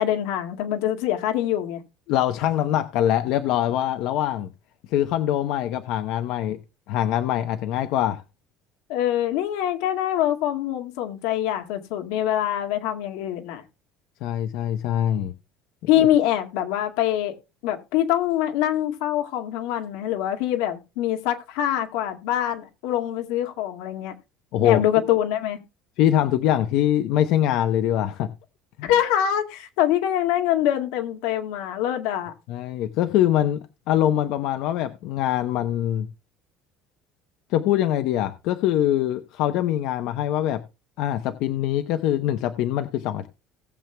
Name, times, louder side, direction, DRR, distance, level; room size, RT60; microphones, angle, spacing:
voice 1, 0.0-1.8 8.9-13.6 15.9-17.4 17.6-24.1 24.6-25.6 28.8-32.3, left 11 dB, 90° left, 2.0 m, -24 dB
voice 2, 2.1-4.5 4.9-6.6 6.9-8.2 14.2-15.3 24.5-24.8 26.0-28.3 28.8-28.9 32.5-36.1 37.5-40.6 41.0-43.3, left 11 dB, 65° left, 0.8 m, -23 dB
18.5 x 7.5 x 2.2 m
cardioid pair, 165°, 0 cm